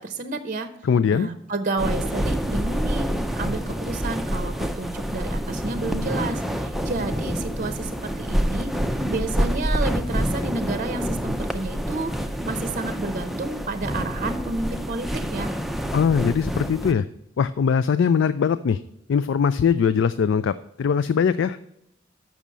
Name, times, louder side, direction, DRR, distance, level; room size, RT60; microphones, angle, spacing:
voice 1, 0.0-0.7 1.1-8.8 9.1-12.1 12.4-15.5, right 3 dB, 40° right, 9 dB, 0.6 m, -30 dB
voice 2, 0.8-1.3 15.9-17.0 17.4-18.8 19.1-21.6, left 6 dB, 65° left, 13 dB, 0.3 m, -21 dB
sound 1, 1.8-16.9, equal, ahead, 0.5 m, -27 dB
6.9 x 6.1 x 7.4 m, 0.81 s
head